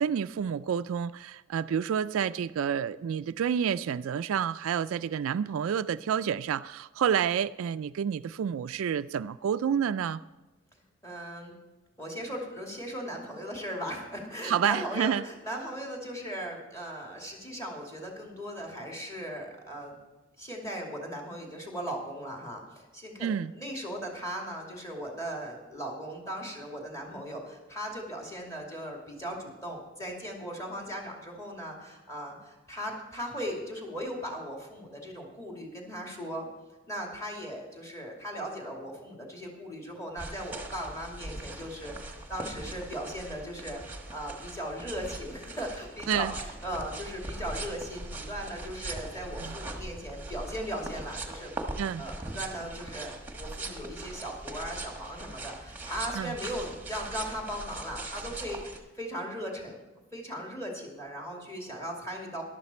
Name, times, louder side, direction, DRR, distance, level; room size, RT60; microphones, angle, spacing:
voice 1, 0.0-10.2 14.4-15.2 23.2-23.5 46.1-46.3 49.4-49.6 51.8-52.0 56.1-56.3, right 8 dB, 70° right, 0.3 m, -29 dB
voice 2, 11.0-11.6 12.0-19.9 20.4-36.5 36.9-51.5 52.0-59.8 60.1-62.4, equal, 15° left, 2.6 m, -38 dB
sound 1, 40.2-58.8, right 2 dB, 10° right, 1.3 m, -40 dB
14.0 x 11.5 x 4.3 m
head